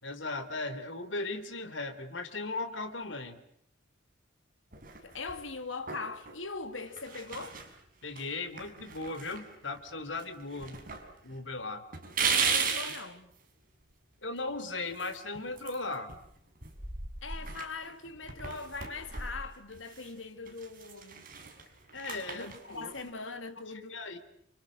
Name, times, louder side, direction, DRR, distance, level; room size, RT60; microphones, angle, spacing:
voice 1, 0.0-3.4 8.0-10.8 11.2-11.9 14.2-16.1 21.9-22.9 23.9-24.2, left 3 dB, 70° left, 3.7 m, -37 dB
sound 1, 4.7-5.4 5.9-6.4 6.9-7.7 8.2-8.3 8.6-9.9 10.1-11.0 11.3-11.4 11.9-13.0 14.9-16.3 16.6-20.1 20.5-23.1, right 6 dB, 45° right, 6.1 m, -36 dB
voice 2, 5.0-7.6 12.2-13.3 17.2-21.3 22.3-24.0, left 4 dB, 85° left, 3.0 m, -41 dB
29.5 x 28.0 x 6.6 m
head